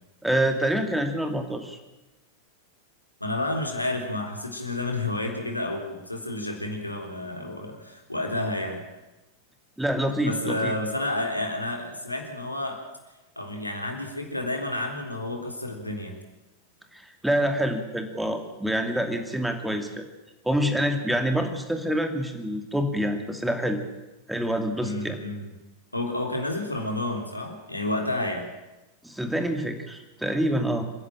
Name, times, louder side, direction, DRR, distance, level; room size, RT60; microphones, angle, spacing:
voice 1, 0.2-1.8 9.8-10.7 16.9-20.0 20.4-23.8 24.3-25.2 29.0-30.9, right 1 dB, 5° right, 6 dB, 2.6 m, -26 dB
voice 2, 3.2-8.8 10.2-12.8 13.4-16.2 24.8-25.5 25.9-28.5, left 2 dB, 85° left, 2 dB, 3.4 m, -30 dB
27.0 x 11.0 x 8.9 m, 1.0 s
figure-of-eight pair, 90°, 0 cm